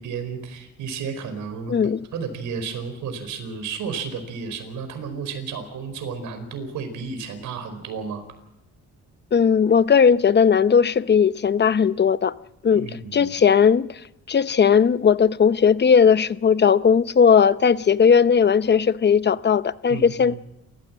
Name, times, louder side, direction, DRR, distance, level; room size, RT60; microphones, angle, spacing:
voice 1, 0.0-1.8 2.1-8.2 12.7-13.3 19.9-20.4, right 5 dB, 80° right, 4.8 m, -32 dB
voice 2, 1.7-2.0 9.3-12.3 12.6-12.9 13.1-14.0 14.3-20.4, left 6 dB, 35° left, 0.8 m, -17 dB
28.0 x 15.0 x 7.5 m
cardioid pair, 90°, 30 cm